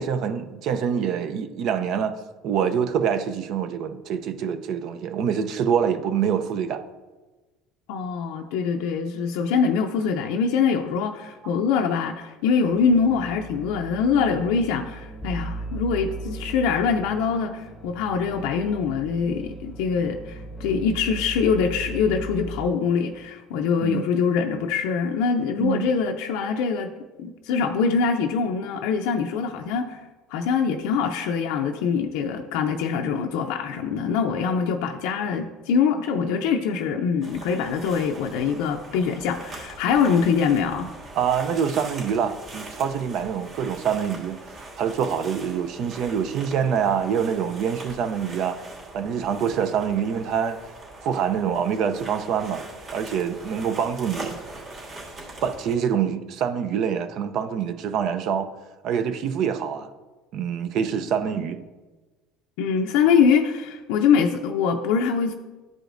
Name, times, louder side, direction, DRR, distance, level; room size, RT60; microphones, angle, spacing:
voice 1, 0.0-2.2 2.4-6.8 23.8-24.1 25.6-25.9 41.2-44.4 44.8-48.6 48.9-50.6 51.0-52.6 52.9-54.3 55.4-58.5 58.8-59.9 60.3-61.6, right 7 dB, 60° right, 0.5 m, -25 dB
voice 2, 7.9-26.9 27.2-30.0 30.3-40.9 62.6-65.3, left 6 dB, 80° left, 0.5 m, -23 dB
sound 1, 12.7-22.7, right 2 dB, 5° left, 0.9 m, -37 dB
sound 2, 37.2-55.7, right 2 dB, 40° right, 2.3 m, -41 dB
12.0 x 4.9 x 2.6 m
supercardioid pair, 115°, 0 cm